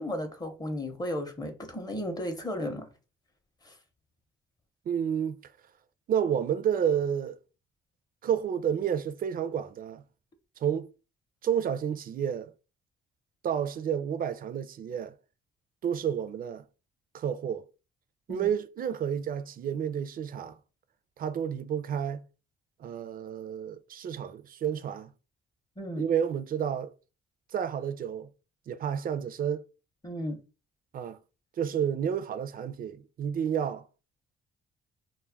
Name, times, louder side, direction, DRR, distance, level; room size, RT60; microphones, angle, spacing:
voice 1, 0.0-2.9 3.6-3.7 18.3-18.5 25.8-26.0 30.0-30.4, left 1 dB, 20° left, 0.6 m, -34 dB
voice 2, 4.9-5.4 6.1-7.4 8.2-10.0 10.6-10.9 11.4-12.5 13.4-15.1 15.8-16.6 17.1-17.6 18.3-20.6 21.2-22.2 22.8-25.1 26.0-26.9 27.5-28.3 28.7-29.7 30.9-31.2 31.6-33.8, right 8 dB, 45° right, 0.4 m, -30 dB
2.2 x 2.1 x 3.3 m
cardioid pair, 90°, 20 cm